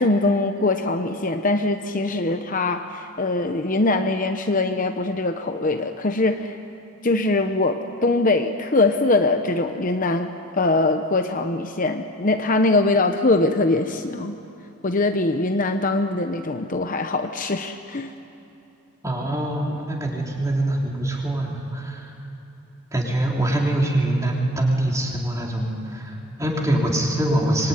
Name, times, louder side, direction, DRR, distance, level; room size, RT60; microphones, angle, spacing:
voice 1, 0.0-6.6 7.0-14.4 14.8-18.1, left 2 dB, 35° left, 6 dB, 0.9 m, -22 dB
voice 2, 19.0-22.1 22.9-27.7, right 1 dB, 15° right, -2 dB, 3.7 m, -24 dB
25.0 x 23.0 x 9.7 m, 2.7 s
head